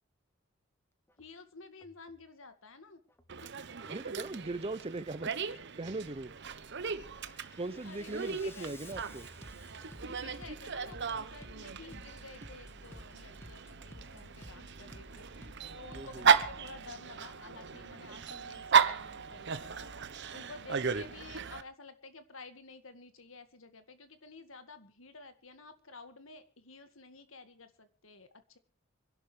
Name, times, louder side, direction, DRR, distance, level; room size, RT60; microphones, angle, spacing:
Bass drum, 1.1-1.3 1.8-2.3 3.1-3.3 3.8-4.3 5.1-5.3 5.8-6.3 6.7-16.9, left 1 dB, 10° left, 1.4 m, -53 dB
voice 1, 1.2-3.0 3.6-3.7 7.2-7.4 7.8-9.0 10.0-19.9 20.3-28.6, left 3 dB, 75° left, 2.0 m, -52 dB
Dog, 3.3-21.6, right 6 dB, 60° right, 1.0 m, -35 dB
voice 2, 3.9-6.4 7.6-9.3 15.9-16.3, right 2 dB, 30° right, 0.8 m, -40 dB
26.5 x 11.5 x 3.4 m
head